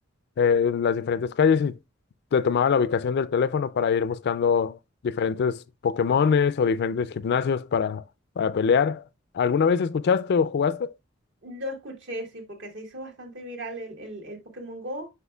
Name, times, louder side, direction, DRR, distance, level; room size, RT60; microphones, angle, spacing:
voice 1, 0.4-1.8 2.3-4.8 5.0-8.0 8.4-9.0 9.3-10.9, left 6 dB, 55° left, 0.3 m, -23 dB
voice 2, 11.4-15.1, equal, 65° right, 1.6 m, -37 dB
8.0 x 5.5 x 2.3 m
head